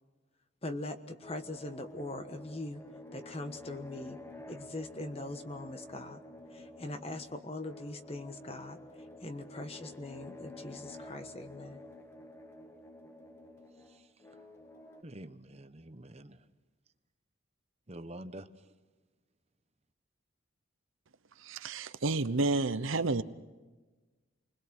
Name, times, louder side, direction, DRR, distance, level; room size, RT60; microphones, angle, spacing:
voice 1, 0.6-2.8 3.1-4.2 4.5-6.2 6.5-8.8 9.2-11.8, left 2 dB, 30° left, 8 dB, 1.3 m, -41 dB
sound 1, 1.2-15.0, left 2 dB, 10° left, 1.1 m, -50 dB
voice 2, 15.0-16.4 17.9-18.5, right 1 dB, 30° right, 9 dB, 1.0 m, -46 dB
voice 3, 21.4-23.2, right 3 dB, 75° right, 12 dB, 0.9 m, -30 dB
28.5 x 21.0 x 6.2 m, 1.3 s
head